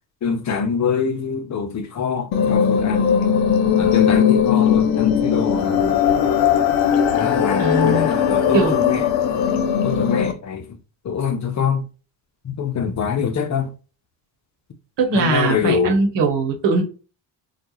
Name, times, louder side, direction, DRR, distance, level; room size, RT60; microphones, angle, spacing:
voice 1, 0.2-3.2 3.8-6.0 7.2-9.0 9.8-10.8 11.0-11.9 12.4-13.7 15.1-16.0, left 6 dB, 40° left, 0.7 m, -24 dB
sound 1, 2.3-10.3, left 8 dB, 75° left, 0.7 m, -18 dB
voice 2, 7.6-8.1 8.5-8.8 15.0-16.8, right 3 dB, 65° right, 1.2 m, -20 dB
2.3 x 2.3 x 3.0 m
hypercardioid pair, 55°, 46 cm